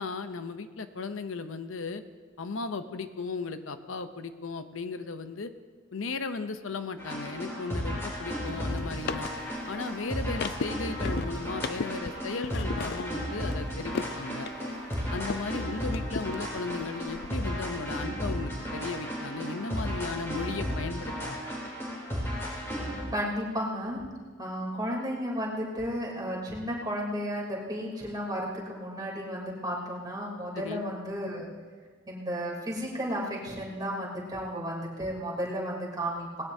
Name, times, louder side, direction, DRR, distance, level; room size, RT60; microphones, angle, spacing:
voice 1, 0.0-2.0 2.4-5.5 5.9-9.3 9.7-14.5 15.1-21.4 30.6-30.8, left 4 dB, 90° left, 9 dB, 0.8 m, -36 dB
sound 1, 7.0-23.1, equal, 15° left, 4.9 m, -34 dB
sound 2, 8.5-15.5 15.8-17.3, left 5 dB, 55° left, 0.4 m, -38 dB
voice 2, 23.1-24.0 24.4-31.5 32.1-36.4, equal, 20° right, -4 dB, 3.4 m, -33 dB
19.5 x 16.5 x 2.8 m, 1.5 s
head